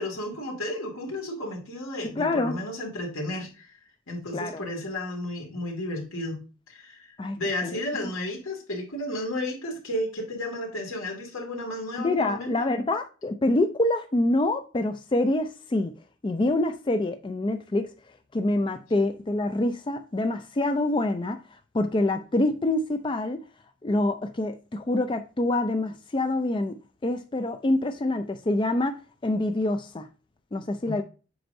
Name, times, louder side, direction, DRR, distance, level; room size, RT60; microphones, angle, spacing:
voice 1, 0.0-3.8 4.1-6.4 6.7-12.5 30.8-31.0, left 1 dB, 80° left, 2.3 m, -33 dB
voice 2, 2.2-2.6 4.3-4.6 7.2-7.4 7.6-8.1 12.0-15.9 16.2-17.9 18.3-21.4 21.7-23.4 23.8-29.0 29.2-30.1 30.5-31.0, left 2 dB, 25° left, 0.4 m, -26 dB
7.8 x 5.1 x 2.6 m
head